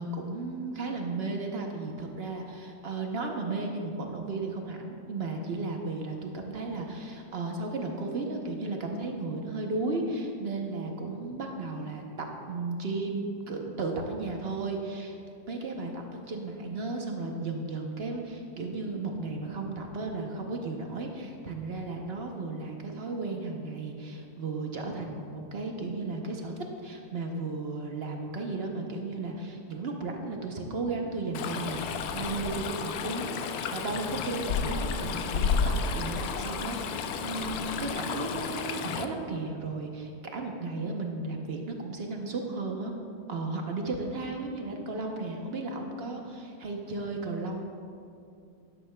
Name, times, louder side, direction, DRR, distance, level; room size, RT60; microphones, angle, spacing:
voice 1, 0.0-15.2 15.5-26.5 26.8-42.9 43.3-47.6, right 3 dB, 55° right, 2 dB, 0.7 m, -34 dB
Stream, 31.3-39.0, left 5 dB, 70° left, 1.0 m, -32 dB
11.5 x 11.0 x 2.2 m, 2.5 s
omnidirectional pair, 1.8 m